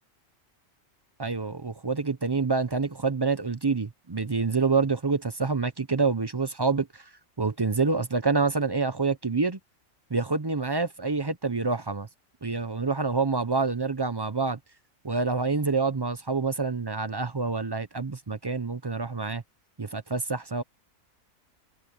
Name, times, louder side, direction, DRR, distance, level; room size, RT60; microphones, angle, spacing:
voice 1, 1.2-7.1 7.4-9.6 10.1-12.1 12.4-14.6 15.0-19.4 19.8-20.6, right 4 dB, 25° right, 0.5 m, -27 dB
omnidirectional pair, 1.4 m